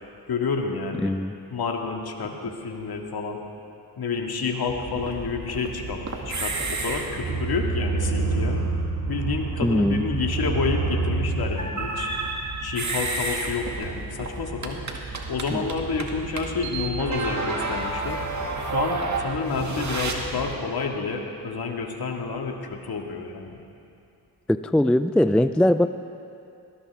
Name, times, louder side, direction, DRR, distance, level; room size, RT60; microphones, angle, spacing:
voice 1, 0.3-1.2 1.5-3.4 4.0-8.6 9.1-12.1 12.6-14.8 15.3-18.2 18.7-23.6, left 4 dB, 60° left, 2 dB, 2.1 m, -29 dB
voice 2, 1.0-1.3 9.6-10.0 15.5-15.6 24.5-25.9, left 1 dB, 5° left, 11 dB, 0.3 m, -21 dB
sound 1, 4.7-20.5, right 3 dB, 40° right, 2.1 m, -29 dB
20.5 x 18.0 x 3.6 m, 2.6 s
cardioid pair, 65°, 42 cm